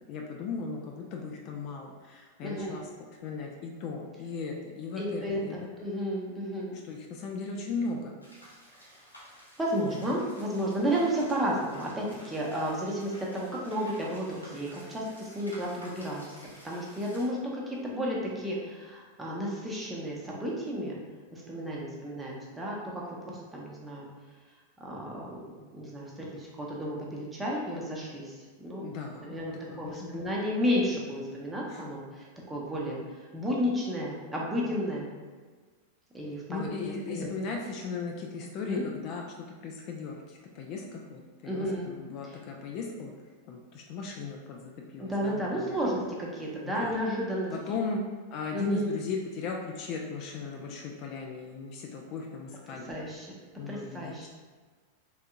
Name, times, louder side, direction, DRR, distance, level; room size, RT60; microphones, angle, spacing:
voice 1, 0.1-2.9 3.2-5.7 6.8-8.2 28.8-29.4 29.7-30.2 31.7-31.8 36.5-43.1 43.5-45.8 46.6-46.9 47.5-48.0 48.3-52.9 53.6-54.3, left 4 dB, 40° left, 1 dB, 0.3 m, -37 dB
voice 2, 2.4-2.8 5.0-6.8 9.6-21.0 21.3-24.1 24.8-28.8 29.2-35.1 36.1-37.3 38.6-38.8 41.5-41.9 42.2-42.4 45.0-47.8 48.5-48.9 52.9-53.4 53.7-54.3, equal, 10° right, -4 dB, 0.7 m, -32 dB
sound 1, 8.2-17.3, equal, 85° left, 0.8 m, -52 dB
3.4 x 2.7 x 2.3 m, 1.4 s
figure-of-eight pair, 90°, 0 cm